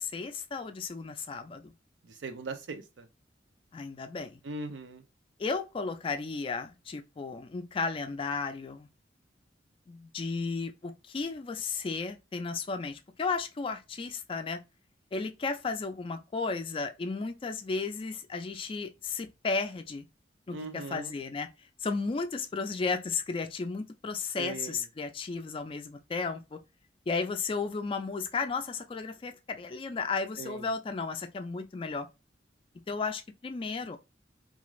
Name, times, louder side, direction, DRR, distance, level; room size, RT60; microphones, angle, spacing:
voice 1, 0.0-1.7 3.7-4.4 5.4-8.9 9.9-14.6 15.1-20.0 20.5-21.5 21.8-26.6 27.1-32.1 32.9-34.0, left 4 dB, 30° left, 0.3 m, -34 dB
voice 2, 2.2-3.1 4.4-5.0 20.5-21.1 24.4-24.8 30.4-30.7, right 3 dB, 85° right, 0.5 m, -39 dB
2.4 x 2.3 x 3.0 m
head